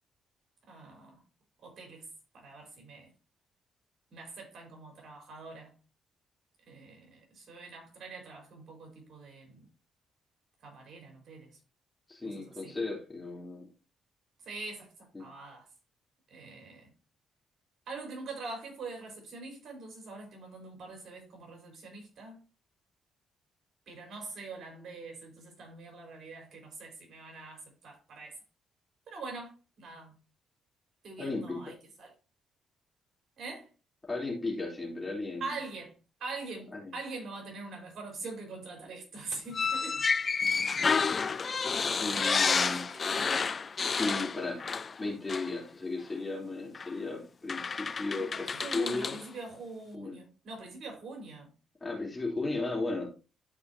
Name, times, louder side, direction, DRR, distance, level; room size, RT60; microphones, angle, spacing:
voice 1, 0.7-1.2 1.6-2.1 2.3-3.1 4.1-5.8 6.7-9.7 10.6-11.6 12.2-12.8 14.4-15.7 16.3-16.9 17.9-22.4 23.9-28.4 29.1-29.5 29.8-30.2 31.0-32.1 33.4-33.7 35.4-40.1 42.1-43.4 48.2-51.5, right 3 dB, 55° right, 4.4 m, -44 dB
voice 2, 12.1-13.7 15.1-15.3 31.2-31.6 34.0-35.5 36.7-36.9 42.0-42.8 44.0-44.6 45.0-49.1 49.9-50.2 51.8-53.1, left 3 dB, 20° left, 3.1 m, -35 dB
sound 1, 39.5-45.0 45.3-45.5 46.7-46.9 47.5-49.2, left 5 dB, 40° left, 0.5 m, -30 dB
12.5 x 4.9 x 2.7 m
cardioid pair, 90°, 0 cm